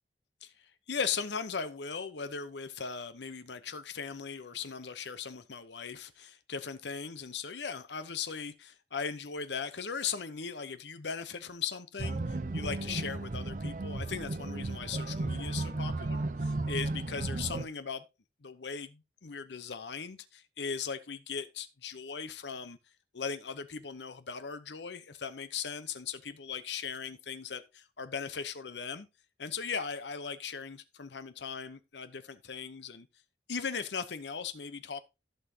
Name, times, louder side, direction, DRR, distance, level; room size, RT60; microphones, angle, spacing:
voice 1, 0.9-18.0 18.4-22.8 23.1-29.1 29.4-33.1 33.5-35.0, left 6 dB, 75° left, 0.8 m, -38 dB
sound 1, 12.0-17.7, right 2 dB, 45° right, 0.6 m, -34 dB
15.0 x 5.6 x 2.8 m
head